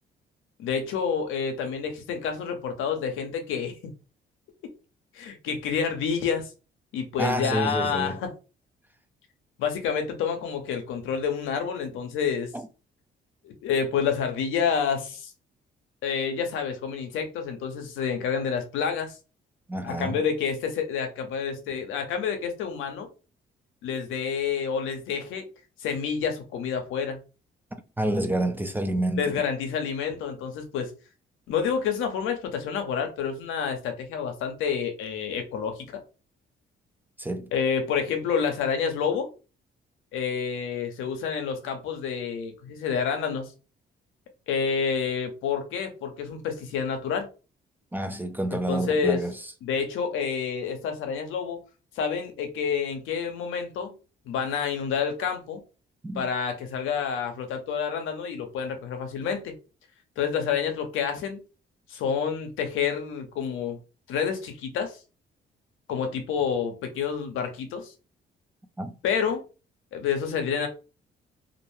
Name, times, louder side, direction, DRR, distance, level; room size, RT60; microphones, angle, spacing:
voice 1, 0.6-3.9 5.1-6.5 6.9-8.3 9.6-12.5 13.4-15.3 16.0-19.2 19.8-23.1 23.8-25.4 25.8-27.2 29.2-30.9 31.5-35.9 37.5-39.3 40.1-43.5 44.5-47.3 48.5-49.2 49.6-51.6 52.0-53.9 54.3-55.6 56.1-59.5 60.2-61.4 61.9-63.8 64.1-65.0 65.9-67.9 69.0-69.4 69.9-70.7, left 6 dB, 85° left, 0.7 m, -28 dB
voice 2, 7.2-8.2 12.5-12.7 19.7-20.2 28.0-29.3 37.2-37.5 47.9-49.3 56.0-56.3 68.8-69.0, right 1 dB, 10° right, 0.4 m, -28 dB
2.4 x 2.2 x 3.1 m
cardioid pair, 90°, 20 cm